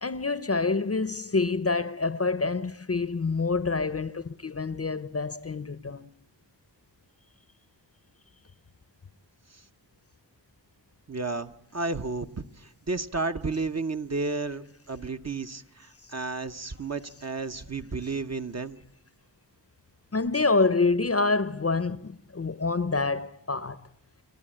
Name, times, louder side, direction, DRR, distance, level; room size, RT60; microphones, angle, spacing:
voice 1, 0.0-6.1 20.1-23.9, left 3 dB, 35° left, 0.7 m, -27 dB
voice 2, 11.1-18.8, right 3 dB, 35° right, 0.9 m, -32 dB
28.0 x 12.0 x 8.7 m
wide cardioid pair, 50°, 43 cm